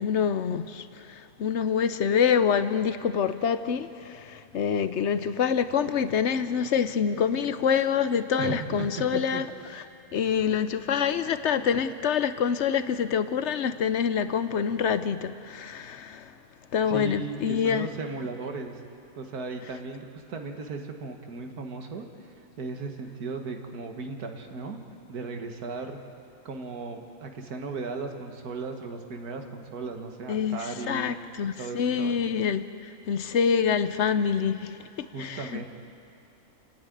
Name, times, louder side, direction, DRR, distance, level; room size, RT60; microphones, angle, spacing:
voice 1, 0.0-9.5 9.7-9.8 10.1-16.3 16.7-17.9 30.3-35.7, left 7 dB, 60° left, 12 dB, 0.8 m, -26 dB
voice 2, 8.4-9.4 16.9-18.8 19.2-24.8 25.1-26.0 26.5-31.1 31.6-32.2 35.1-35.7, right 4 dB, 90° right, 4 dB, 2.0 m, -36 dB
29.0 x 10.0 x 9.2 m, 2.6 s
omnidirectional pair, 1.6 m